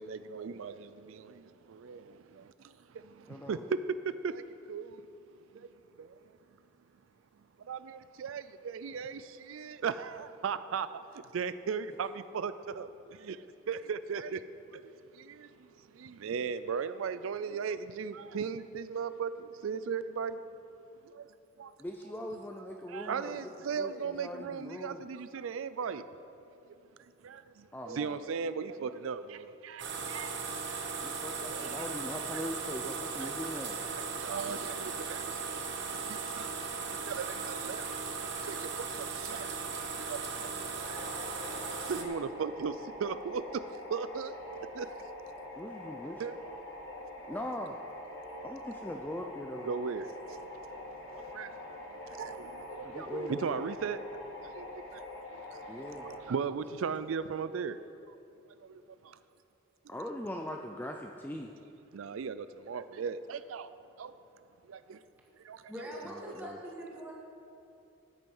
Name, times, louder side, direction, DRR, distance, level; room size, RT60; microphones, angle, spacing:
voice 1, 0.0-3.8 4.2-5.0 5.5-5.7 6.0-6.2 7.6-20.4 21.0-21.7 22.9-26.0 27.0-30.4 31.4-31.8 32.3-32.4 32.8-32.9 33.2-33.3 34.1-39.6 39.9-44.4 44.7-44.9 46.2-46.4 49.7-54.0 54.4-57.8 58.1-58.2 58.6-59.2 61.9-63.7 64.0-64.1 64.6-65.0 65.4-65.7, right 6 dB, 80° right, 0.4 m, -38 dB
voice 2, 3.3-3.6 21.8-23.4 23.8-25.1 27.7-28.2 31.0-33.8 45.6-46.2 47.3-47.8 48.4-49.7 52.8-53.5 55.7-56.1 59.9-61.5 66.0-66.5, left 1 dB, 10° left, 0.4 m, -41 dB
sound 1, 29.8-42.0, right 5 dB, 60° right, 1.2 m, -37 dB
sound 2, 40.8-56.2, left 1 dB, 65° left, 2.0 m, -45 dB
voice 3, 65.7-67.1, equal, 10° right, 2.1 m, -42 dB
13.5 x 8.3 x 5.5 m
head